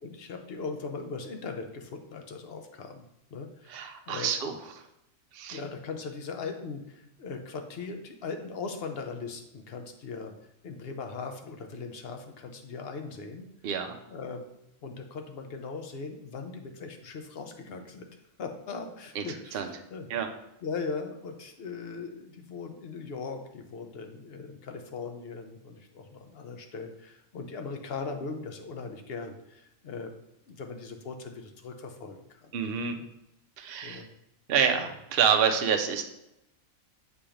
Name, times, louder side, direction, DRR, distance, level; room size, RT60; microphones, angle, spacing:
voice 1, 0.0-3.1 3.3-4.3 5.5-13.4 14.1-14.4 14.8-18.1 18.4-20.1 20.6-30.1 30.5-32.5 32.9-33.1 33.8-34.1 34.7-34.9, left 4 dB, 55° left, 5 dB, 0.8 m, -39 dB
voice 2, 3.7-4.5 5.3-5.6 13.6-13.9 19.2-19.3 19.5-19.7 20.1-20.3 32.5-33.0 33.6-34.0 34.5-36.0, right 7 dB, 55° right, 5 dB, 0.7 m, -27 dB
7.0 x 2.9 x 5.0 m, 0.86 s
omnidirectional pair, 1.4 m